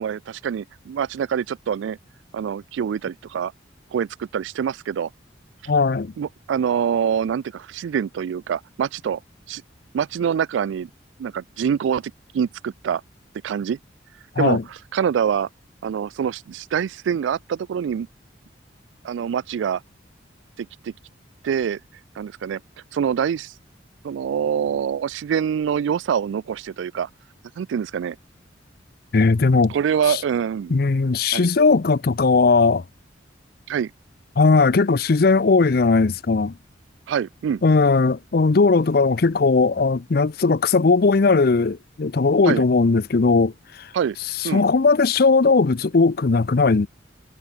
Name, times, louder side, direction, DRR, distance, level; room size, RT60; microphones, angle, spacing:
voice 1, 0.0-2.0 2.3-3.5 3.9-5.1 6.2-9.2 9.5-9.6 9.9-10.9 11.2-13.0 13.4-13.8 14.4-15.5 15.8-18.1 19.0-19.8 20.6-20.9 21.4-21.8 22.2-22.6 22.9-23.5 24.0-27.1 27.6-28.2 29.7-30.8 31.3-31.5 33.7-33.9 37.1-37.6 42.4-42.6 43.9-44.2 44.4-44.6, right 8 dB, 80° right, 0.3 m, -25 dB
voice 2, 5.7-6.1 14.4-14.6 29.1-29.8 30.1-30.2 30.7-32.8 34.4-36.5 37.6-43.9 44.4-46.9, left 4 dB, 55° left, 0.6 m, -18 dB
head